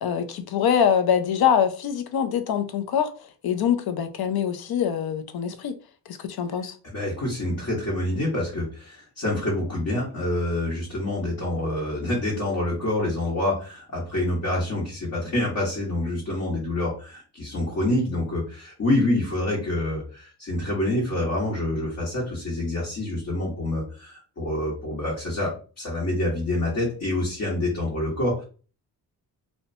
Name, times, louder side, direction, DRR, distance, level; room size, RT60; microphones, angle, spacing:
voice 1, 0.0-3.1 3.4-5.7 6.1-6.7, left 8 dB, 65° left, 0.5 m, -24 dB
voice 2, 6.8-28.4, left 1 dB, 45° left, 1.2 m, -27 dB
2.7 x 2.1 x 2.6 m
cardioid pair, 80°, 41 cm